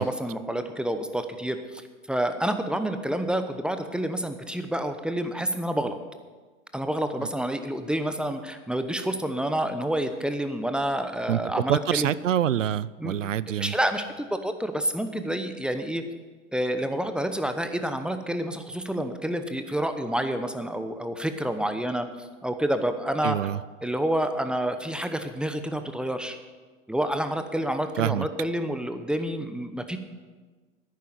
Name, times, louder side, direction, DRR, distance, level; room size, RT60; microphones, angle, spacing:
voice 1, 0.0-1.8 2.1-6.0 6.7-12.1 13.0-13.2 13.6-16.0 16.5-23.4 23.8-26.4 26.9-30.0, right 1 dB, ahead, 8 dB, 0.9 m, -28 dB
voice 2, 11.7-13.7 23.2-23.6 28.0-28.3, right 10 dB, 85° right, 20 dB, 0.5 m, -26 dB
10.5 x 9.4 x 8.1 m, 1.4 s
hypercardioid pair, 95°, 37 cm